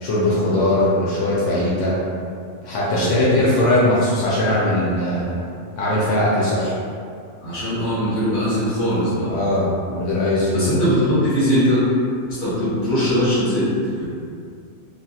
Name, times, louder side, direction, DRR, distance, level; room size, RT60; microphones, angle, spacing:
voice 1, 0.0-2.0 2.6-5.4 5.8-6.7 9.3-10.7, left 1 dB, 85° left, -7 dB, 0.9 m, -20 dB
voice 2, 2.9-3.3 7.4-9.3 10.5-11.8 12.3-13.7 14.0-14.1, equal, 40° left, -12 dB, 1.4 m, -21 dB
2.7 x 2.4 x 2.3 m, 2.3 s
omnidirectional pair, 1.2 m